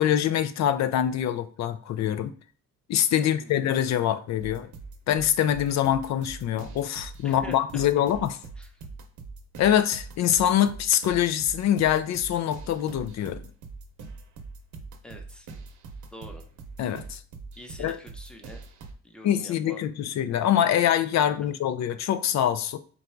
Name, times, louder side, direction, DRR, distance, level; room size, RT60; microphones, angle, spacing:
voice 1, 0.0-2.3 2.9-4.7 5.1-8.3 9.6-13.4 16.8-17.2 17.8-18.0 19.2-22.8, left 10 dB, 65° left, 0.5 m, -24 dB
voice 2, 3.2-3.8 7.2-7.6 8.6-8.7 15.0-15.5 16.1-16.4 17.6-18.6 19.0-19.8, equal, 5° left, 0.8 m, -45 dB
sound 1, 4.4-18.9, right 4 dB, 70° right, 0.7 m, -43 dB
4.0 x 2.2 x 4.4 m
cardioid pair, 90°, 30 cm